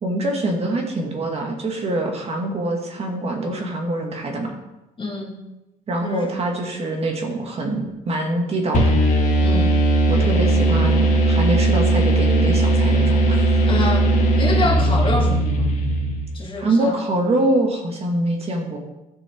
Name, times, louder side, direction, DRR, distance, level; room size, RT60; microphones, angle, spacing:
voice 1, 0.0-4.6 5.9-8.8 10.1-13.7 16.6-18.8, right 1 dB, 35° right, 1 dB, 2.0 m, -24 dB
voice 2, 5.0-5.4 6.0-6.3 9.4-9.8 13.7-15.7 16.3-17.0, left 3 dB, 30° left, 0 dB, 2.0 m, -26 dB
sound 1, 8.7-16.4, right 2 dB, 50° left, 2.6 m, -18 dB
12.5 x 6.3 x 4.6 m, 0.97 s
cardioid pair, 110°, 17 cm